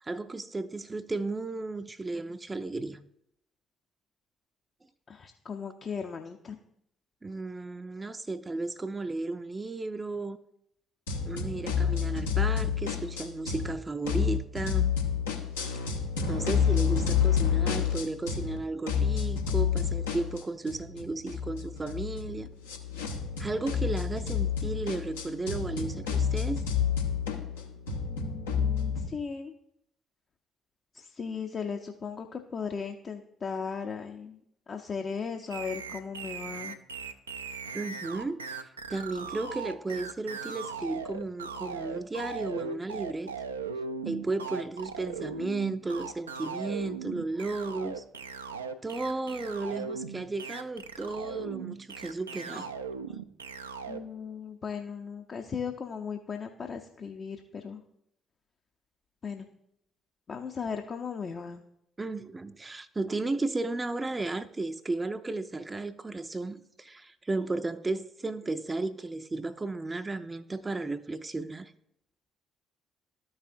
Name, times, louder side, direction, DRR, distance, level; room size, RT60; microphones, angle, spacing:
voice 1, 0.0-3.0 7.2-10.4 11.3-14.9 16.3-22.5 23.4-26.6 37.7-43.3 44.0-48.0 48.8-52.7 53.1-53.2 62.0-71.7, right 3 dB, 25° right, 0.4 m, -34 dB
voice 2, 5.1-6.6 28.1-29.5 30.9-34.4 34.7-36.8 53.9-57.8 59.2-59.5 60.3-61.6, left 6 dB, 45° left, 0.6 m, -37 dB
sound 1, 11.1-13.7 14.0-18.6 18.9-29.1, left 7 dB, 80° left, 0.8 m, -29 dB
sound 2, 35.5-54.0, right 5 dB, 85° right, 0.3 m, -38 dB
13.0 x 5.6 x 2.6 m
figure-of-eight pair, 45°, 0 cm